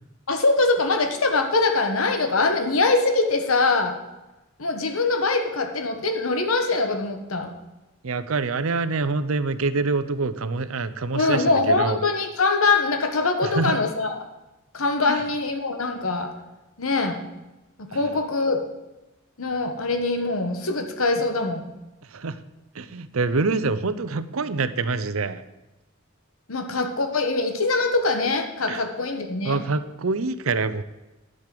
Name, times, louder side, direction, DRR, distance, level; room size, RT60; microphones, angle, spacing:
voice 1, 0.3-3.9 4.6-7.5 11.1-14.2 14.7-16.3 16.8-17.2 17.8-18.6 19.4-21.7 26.5-29.6, left 3 dB, 85° left, 5 dB, 1.3 m, -23 dB
voice 2, 8.0-12.0 13.4-13.8 15.1-15.2 17.9-18.0 22.1-22.4 22.7-25.4 28.7-28.8 29.4-30.8, right 3 dB, 80° right, 14 dB, 0.7 m, -26 dB
10.5 x 6.6 x 7.6 m, 1.0 s
head